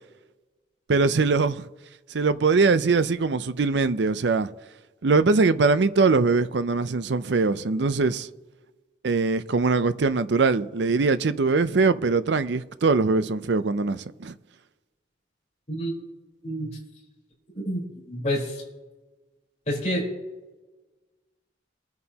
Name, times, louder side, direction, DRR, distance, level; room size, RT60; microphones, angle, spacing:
voice 1, 0.9-1.7 2.1-4.5 5.0-8.3 9.0-14.3, right 4 dB, 70° right, 0.5 m, -22 dB
voice 2, 18.1-18.6 19.7-20.0, equal, 35° left, 4.2 m, -28 dB
22.5 x 9.4 x 2.9 m
head